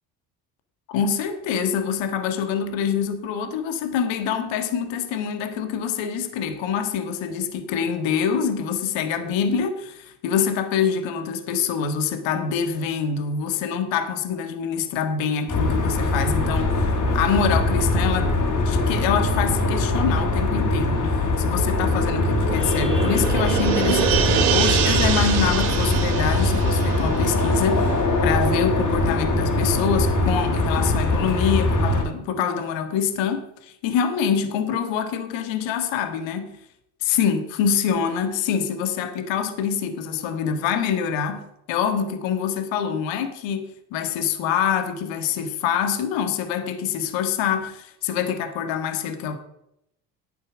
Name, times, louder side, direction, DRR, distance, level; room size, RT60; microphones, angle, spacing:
voice 1, 0.9-18.4 18.7-36.6 37.0-49.4, left 7 dB, 65° left, 1.7 m, -25 dB
sound 1, 15.5-32.0, left 2 dB, 40° left, 3.7 m, -22 dB
sound 2, 21.5-28.5 28.8-28.9, right 10 dB, 85° right, 1.1 m, -26 dB
12.0 x 8.8 x 6.2 m
hypercardioid pair, 60°, 49 cm